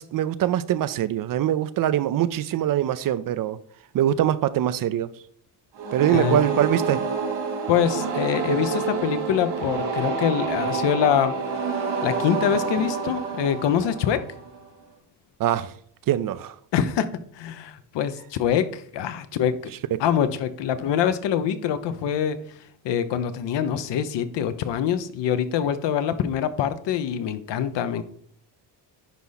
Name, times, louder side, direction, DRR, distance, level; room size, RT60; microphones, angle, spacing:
voice 1, 0.0-3.6 3.9-5.1 5.9-7.0 15.4-15.7 16.1-16.6 19.9-20.0, right 11 dB, 50° right, 0.5 m, -23 dB
sound 1, 5.7-14.6, right 4 dB, 85° right, 2.7 m, -28 dB
voice 2, 6.1-6.4 7.7-11.4 12.0-14.2 16.7-17.1 17.3-19.6 20.0-22.4 22.8-28.0, left 9 dB, 70° left, 0.9 m, -24 dB
10.0 x 4.1 x 4.0 m
cardioid pair, 130°, 44 cm